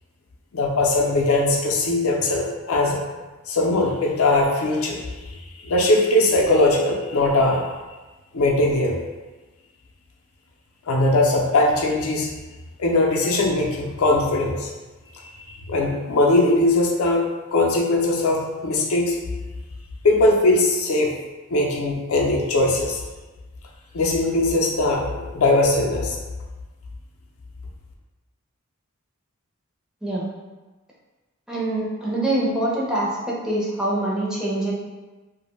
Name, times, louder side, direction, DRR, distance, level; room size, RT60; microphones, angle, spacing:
voice 1, 0.5-3.0 3.5-7.7 8.3-9.0 10.9-12.3 12.8-14.7 15.5-17.2 17.5-19.2 20.0-21.1 21.5-23.0 23.9-26.2, left 2 dB, 70° left, -1 dB, 0.5 m, -20 dB
voice 2, 31.5-34.7, right 1 dB, 5° right, -7 dB, 0.5 m, -24 dB
2.5 x 2.1 x 3.0 m, 1.2 s
head